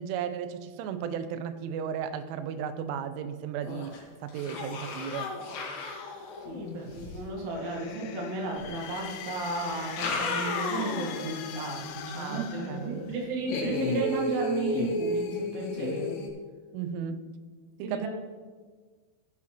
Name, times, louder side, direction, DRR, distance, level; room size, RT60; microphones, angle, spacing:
voice 1, 0.0-3.9 4.2-5.3 12.2-13.2 16.7-17.3 17.8-18.1, right 8 dB, 80° right, 10 dB, 3.0 m, -35 dB
sound 1, 3.6-4.0 4.3-7.2 8.6-8.7 9.7-11.2 11.6-11.7 13.5-16.3, left 2 dB, 70° left, 3.8 m, -33 dB
voice 2, 6.5-16.2 17.8-18.1, right 2 dB, 65° right, -2 dB, 4.1 m, -33 dB
sound 2, 7.3-13.4, left 9 dB, 85° left, 3.2 m, -42 dB
15.5 x 8.2 x 3.0 m, 1.5 s
omnidirectional pair, 5.8 m